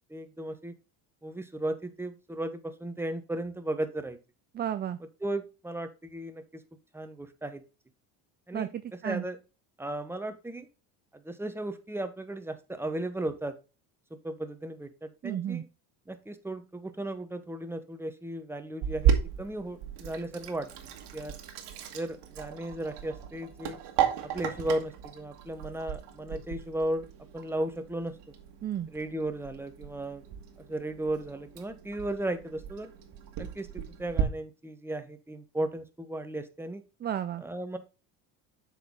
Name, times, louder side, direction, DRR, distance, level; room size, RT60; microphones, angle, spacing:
voice 1, 0.1-0.7 1.2-4.2 5.2-6.6 6.9-7.6 8.5-8.7 9.0-9.4 9.8-10.7 11.1-13.5 14.2-15.7 16.1-20.7 21.1-21.4 21.9-23.8 24.2-27.1 27.3-28.2 28.9-30.2 30.7-32.9 33.4-36.8 37.4-37.8, right 1 dB, 5° right, 9 dB, 0.9 m, -35 dB
voice 2, 4.5-5.0 8.5-9.2 15.2-15.6 28.6-28.9 37.0-37.4, right 10 dB, 25° right, 11 dB, 0.4 m, -33 dB
Sink (filling or washing), 18.8-34.2, right 9 dB, 65° right, 1.6 m, -35 dB
7.7 x 4.7 x 3.7 m, 0.31 s
supercardioid pair, 85°, 45 cm